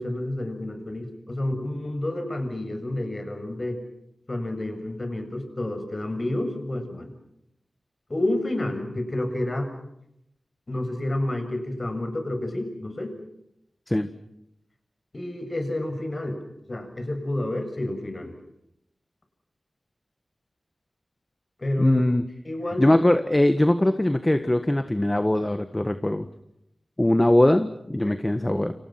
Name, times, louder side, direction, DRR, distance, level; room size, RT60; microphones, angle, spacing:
voice 1, 0.0-3.8 4.3-7.1 8.1-9.7 10.7-13.2 15.1-16.4 16.7-18.3 21.6-22.0 22.5-23.0 28.0-28.2, left 1 dB, 35° left, 6 dB, 7.1 m, -29 dB
voice 2, 21.8-22.2 22.8-26.3 27.0-28.7, left 1 dB, 15° left, 9 dB, 1.6 m, -21 dB
29.5 x 28.5 x 5.9 m, 0.81 s
wide cardioid pair, 80°, 0 cm